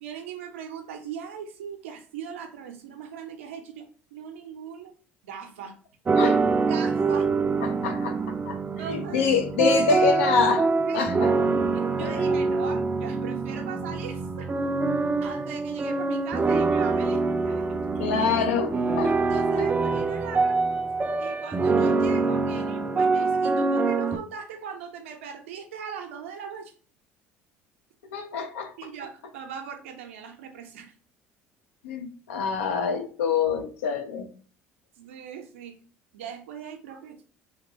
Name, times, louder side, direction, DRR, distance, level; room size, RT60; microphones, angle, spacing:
voice 1, 0.0-4.9 5.2-5.8 6.7-7.3 8.8-9.3 10.9-11.3 11.7-14.5 15.2-17.8 19.0-20.6 21.2-26.7 28.8-30.9 35.0-35.8 36.1-37.3, right 7 dB, 80° right, 5 dB, 0.6 m, -39 dB
sound 1, 6.1-24.2, right 4 dB, 25° right, 0.4 m, -25 dB
voice 2, 7.6-8.6 8.9-11.3 12.0-12.2 18.0-19.1 19.6-19.7 28.1-28.7 31.8-34.3, left 6 dB, 80° left, 6 dB, 0.5 m, -26 dB
2.9 x 2.9 x 2.7 m, 0.40 s
hypercardioid pair, 60°, 7 cm